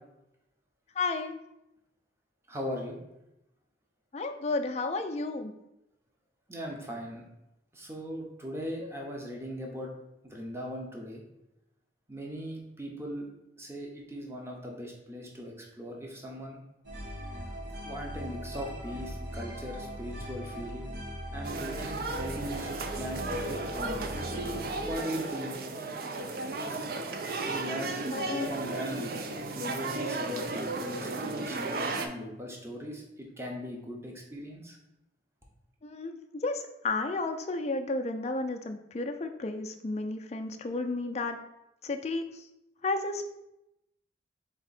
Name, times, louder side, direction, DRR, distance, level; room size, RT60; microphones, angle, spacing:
voice 1, 1.0-1.4 4.1-5.5 28.1-28.5 35.8-41.4 41.8-42.2 42.8-43.3, left 3 dB, 35° left, 5 dB, 0.4 m, -32 dB
voice 2, 2.5-3.0 6.5-7.2 7.7-9.9 10.2-11.2 12.1-13.3 13.6-16.6 17.8-21.0 21.3-24.1 24.8-25.5 26.6-26.9 27.4-28.0 28.3-29.1 29.5-34.8, equal, 15° right, -1 dB, 0.7 m, -39 dB
sound 1, 16.8-24.9, equal, 85° right, 1.4 m, -40 dB
sound 2, 21.4-32.1, right 3 dB, 55° right, 0.4 m, -34 dB
3.6 x 3.5 x 4.1 m, 0.87 s
head